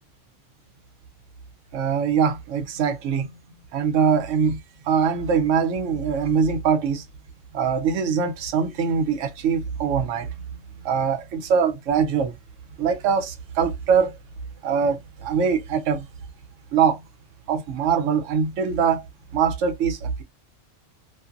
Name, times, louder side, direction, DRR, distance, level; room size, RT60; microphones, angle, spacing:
voice 1, 1.7-3.3 3.7-4.6 4.9-7.0 7.5-10.3 10.8-12.3 12.8-14.2 14.6-16.0 16.7-17.0 17.5-19.0 19.3-20.2, right 6 dB, 85° right, 0.9 m, -22 dB
2.5 x 2.5 x 2.4 m
omnidirectional pair, 1.2 m